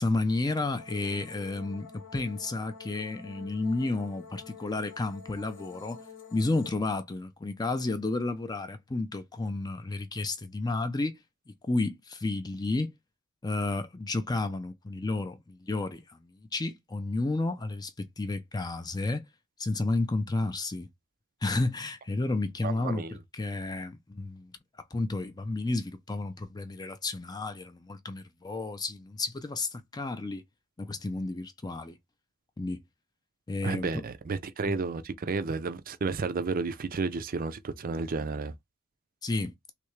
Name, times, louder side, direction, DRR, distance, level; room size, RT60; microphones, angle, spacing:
voice 1, 0.0-6.0 6.3-11.2 11.5-12.9 13.4-19.2 19.6-20.9 21.4-24.5 24.9-30.4 30.8-32.0 32.6-32.8 33.5-34.0 34.6-34.8 39.2-39.5, left 2 dB, 15° left, 0.4 m, -31 dB
sound 1, 0.8-6.7, left 6 dB, 55° left, 0.8 m, -48 dB
voice 2, 22.6-23.1 33.6-38.5, right 4 dB, 40° right, 0.4 m, -32 dB
3.3 x 2.8 x 3.1 m
head